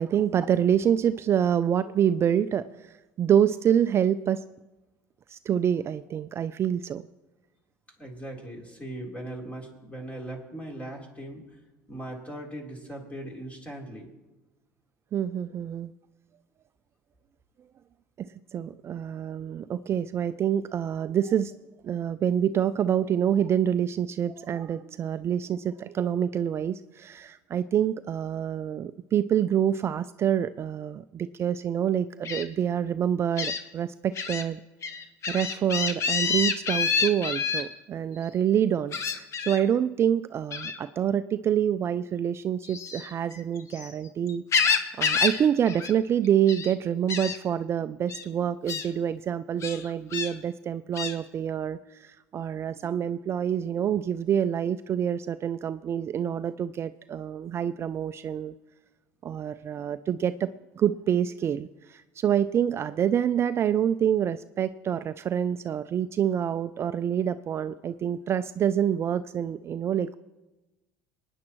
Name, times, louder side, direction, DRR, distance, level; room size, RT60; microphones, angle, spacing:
voice 1, 0.0-4.4 5.3-7.1 15.1-15.9 18.2-21.6 21.8-34.6 35.3-44.4 45.0-58.5 59.2-60.5 60.8-70.2, right 9 dB, 40° right, 12 dB, 0.3 m, -27 dB
voice 2, 8.0-11.6 11.9-14.1, right 1 dB, 20° left, -1 dB, 3.6 m, -39 dB
Gull seagull, 32.2-32.4 33.4-33.6 34.1-34.4 34.8-37.6 38.9-39.6 40.5-40.8 42.6-43.9 44.3-45.4 45.7-45.9 46.2-46.7 47.1-47.4 48.1-48.2 48.7-48.9 49.6-50.3 50.9-51.1, left 5 dB, 45° left, 1.2 m, -28 dB
24.0 x 9.8 x 3.1 m, 1.1 s
supercardioid pair, 90°, 7 cm